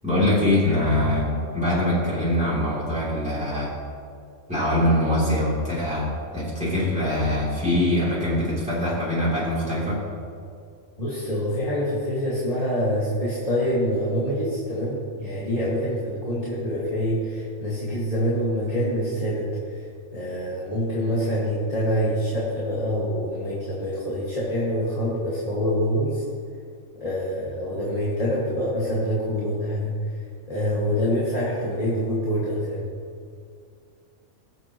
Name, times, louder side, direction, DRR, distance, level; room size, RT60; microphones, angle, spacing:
voice 1, 0.0-3.7 4.5-10.0, left 1 dB, 5° right, -9 dB, 3.1 m, -23 dB
voice 2, 11.0-19.8 20.1-26.2 27.0-30.2 30.5-32.9, equal, 30° left, -7 dB, 2.0 m, -26 dB
20.5 x 7.8 x 3.0 m, 2.4 s
omnidirectional pair, 1.3 m